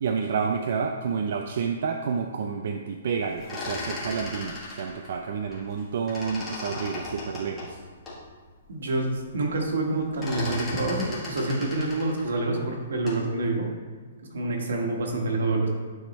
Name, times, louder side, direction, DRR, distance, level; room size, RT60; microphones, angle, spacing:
voice 1, 0.0-7.8, right 6 dB, 50° right, 4 dB, 0.4 m, -29 dB
sound 1, 3.3-5.8 6.1-8.2 8.7-8.8 9.1-9.5 9.7-13.3, left 2 dB, 10° left, 1.4 m, -37 dB
voice 2, 8.7-13.7 14.2-15.7, right 2 dB, 75° right, 1 dB, 1.4 m, -27 dB
9.1 x 3.6 x 4.2 m, 1.4 s
hypercardioid pair, 180°, 0 cm